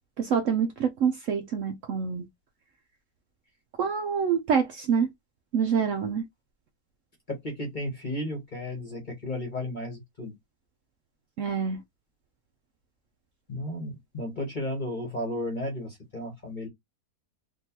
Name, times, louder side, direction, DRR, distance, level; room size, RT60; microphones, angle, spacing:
voice 1, 0.2-2.3 3.8-5.1 5.5-6.2 11.4-11.8, right 6 dB, 65° right, 0.8 m, -26 dB
voice 2, 7.3-10.3 13.5-16.7, left 1 dB, 35° left, 0.9 m, -34 dB
3.7 x 2.5 x 2.8 m
omnidirectional pair, 1.8 m